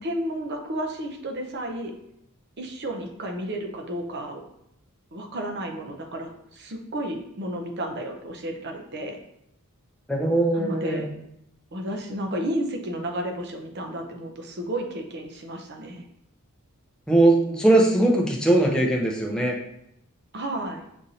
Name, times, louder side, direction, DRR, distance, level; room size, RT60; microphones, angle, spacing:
voice 1, 0.0-1.9 2.6-4.4 5.1-9.2 10.5-11.1 11.7-16.0 20.3-20.8, right 1 dB, 50° right, 3 dB, 0.6 m, -32 dB
voice 2, 10.1-11.1 17.1-19.6, right 2 dB, 5° left, -2 dB, 0.5 m, -20 dB
6.2 x 2.6 x 2.8 m, 0.77 s
head